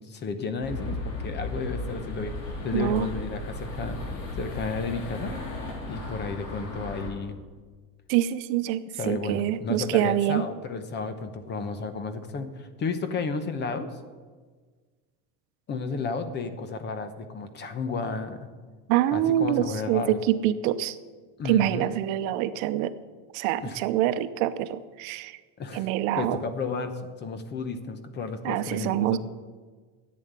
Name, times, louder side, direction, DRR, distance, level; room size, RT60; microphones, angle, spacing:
voice 1, 0.0-2.3 2.6-4.0 4.4-5.3 5.8-7.4 8.8-14.0 15.7-18.5 19.1-20.2 21.4-21.9 23.6-23.8 25.6-25.9 26.2-29.2, left 4 dB, 25° left, 10 dB, 0.9 m, -32 dB
sound 1, 0.6-7.1, left 2 dB, 65° left, 3.7 m, -35 dB
voice 2, 2.7-3.1 8.1-10.4 18.9-21.0 21.4-22.9 23.3-25.4 25.7-26.4 28.4-29.2, right 12 dB, 70° right, 12 dB, 0.9 m, -25 dB
11.0 x 8.7 x 9.5 m, 1.5 s
cardioid pair, 175°, 40 cm